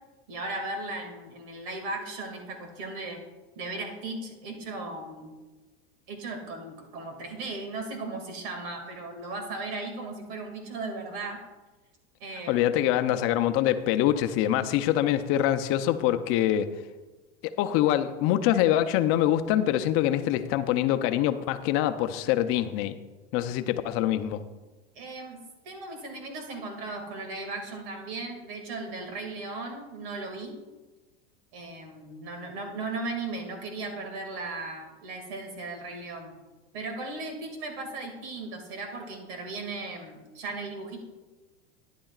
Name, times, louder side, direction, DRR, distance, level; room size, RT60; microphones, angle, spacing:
voice 1, 0.3-3.2 3.6-5.3 6.1-11.4 12.2-12.6 24.9-30.6 31.5-36.4 36.7-41.0, right 3 dB, 60° right, 3 dB, 2.3 m, -37 dB
voice 2, 12.5-16.7 17.6-23.0 23.3-24.4, left 12 dB, 45° left, 10 dB, 0.6 m, -24 dB
12.0 x 10.5 x 2.4 m, 1.2 s
supercardioid pair, 130°, 32 cm